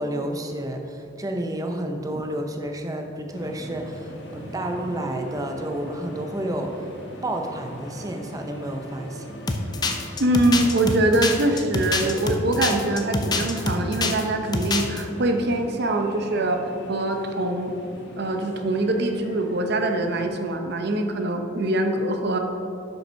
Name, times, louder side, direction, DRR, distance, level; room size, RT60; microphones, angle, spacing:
voice 1, 0.0-6.9 7.2-9.3, right 1 dB, 20° right, 3 dB, 0.7 m, -30 dB
sound 1, 3.3-20.3, equal, 60° left, 1.3 m, -42 dB
sound 2, 9.5-14.2 14.5-15.0, left 3 dB, 20° left, 0.5 m, -25 dB
voice 2, 10.2-17.7 18.2-22.4, right 1 dB, 55° right, 5 dB, 0.8 m, -23 dB
7.5 x 5.5 x 5.6 m, 2.8 s
head